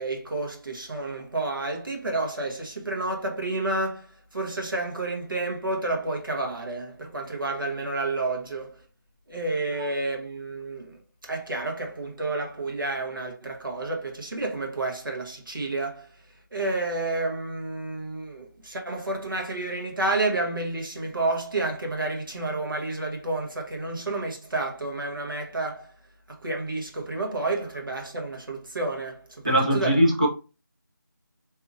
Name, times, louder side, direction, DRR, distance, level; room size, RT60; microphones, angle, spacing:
voice 1, 0.0-8.8 9.3-11.0 11.2-16.1 16.5-25.9 26.3-30.0, right 2 dB, 80° right, 1.1 m, -30 dB
voice 2, 29.4-30.3, right 1 dB, 20° right, 0.4 m, -20 dB
2.7 x 2.5 x 2.5 m
figure-of-eight pair, 170°, 11 cm